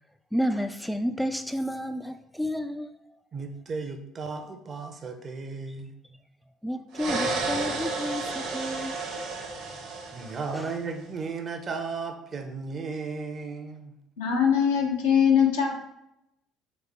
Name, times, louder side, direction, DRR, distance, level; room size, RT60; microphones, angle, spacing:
voice 1, 0.3-3.2 6.6-9.0 10.2-10.3 10.5-10.7, equal, ahead, 8 dB, 0.3 m, -31 dB
voice 2, 3.3-5.9 10.1-14.0, right 4 dB, 40° right, 6 dB, 0.7 m, -35 dB
sound 1, 6.9-10.8, right 3 dB, 65° right, 1.1 m, -32 dB
voice 3, 14.2-15.9, left 7 dB, 80° left, -1 dB, 0.9 m, -22 dB
4.2 x 3.5 x 3.5 m, 0.81 s
hypercardioid pair, 60°, 0 cm